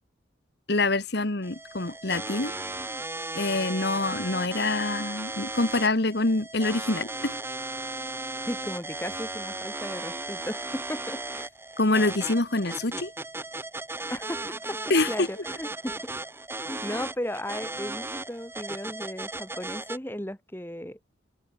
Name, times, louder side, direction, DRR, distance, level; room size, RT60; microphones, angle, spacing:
voice 1, 0.7-2.5 3.3-7.4 11.8-13.1 14.9-15.3, left 2 dB, 55° left, 1.6 m, -26 dB
sound 1, 1.4-20.0, right 2 dB, 10° right, 1.6 m, -36 dB
voice 2, 8.5-11.5 14.1-14.8 15.1-15.9 16.7-21.0, left 1 dB, 10° left, 2.1 m, -35 dB
head